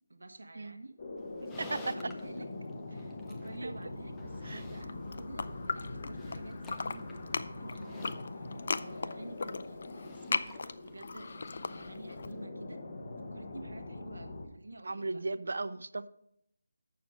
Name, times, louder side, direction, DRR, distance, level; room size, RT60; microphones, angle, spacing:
voice 1, 0.1-1.0 1.5-2.5 2.9-12.8 13.2-15.2, right 2 dB, 85° right, 8 dB, 1.1 m, -50 dB
sound 1, 1.0-14.5, left 2 dB, 35° left, 1.0 m, -43 dB
Livestock farm animals working animals, 1.2-12.4, left 2 dB, 5° left, 0.6 m, -54 dB
voice 2, 1.4-2.1 3.6-3.7 4.4-4.6 14.8-16.1, right 3 dB, 70° right, 15 dB, 0.5 m, -36 dB
sound 2, 4.7-6.4 6.6-12.3, left 4 dB, 50° left, 0.4 m, -37 dB
7.6 x 6.9 x 4.9 m, 0.76 s
figure-of-eight pair, 170°, 0 cm